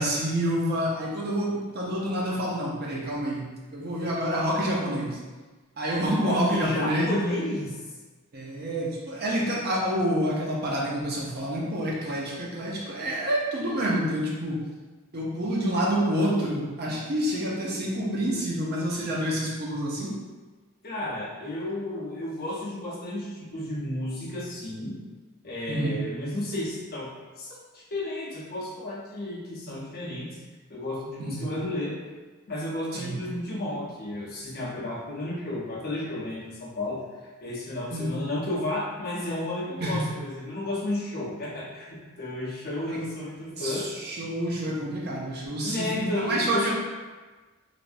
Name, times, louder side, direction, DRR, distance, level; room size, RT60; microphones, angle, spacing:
voice 1, 0.0-5.2 5.8-7.1 8.3-14.6 15.1-20.2 25.7-26.0 31.2-31.5 32.9-33.2 37.9-38.2 39.8-40.1 42.9-43.0 43.4-46.7, equal, 45° right, -4 dB, 0.7 m, -28 dB
voice 2, 6.2-7.8 20.8-25.0 25.4-27.1 27.4-30.4 30.7-32.0 32.5-37.0 37.4-43.9 45.6-46.7, left 1 dB, 45° left, -5 dB, 0.7 m, -32 dB
3.3 x 2.5 x 2.5 m, 1.3 s
head